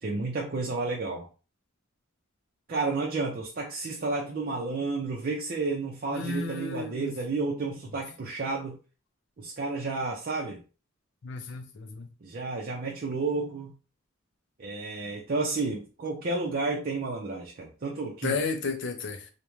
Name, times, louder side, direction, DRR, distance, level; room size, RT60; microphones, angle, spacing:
voice 1, 0.0-1.3 2.7-8.8 9.4-10.6 12.2-13.7 14.6-18.4, right 3 dB, 45° right, 0.4 m, -31 dB
voice 2, 6.1-7.1 11.2-12.1 18.2-19.3, left 4 dB, 60° left, 0.4 m, -33 dB
2.4 x 2.1 x 3.0 m
head